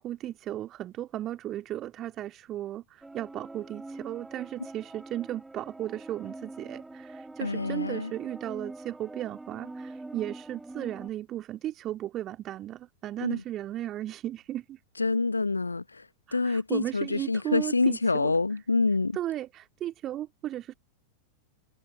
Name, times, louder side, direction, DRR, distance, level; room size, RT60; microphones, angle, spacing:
voice 1, 0.0-14.8 16.3-18.3 19.1-20.7, right 12 dB, 30° right, 2.1 m, -35 dB
sound 1, 3.0-11.1, right 2 dB, 5° right, 5.6 m, -44 dB
voice 2, 7.4-8.1 13.2-13.4 15.0-16.1 16.3-19.2, left 3 dB, 80° left, 0.8 m, -27 dB
figure-of-eight pair, 90°, 0 cm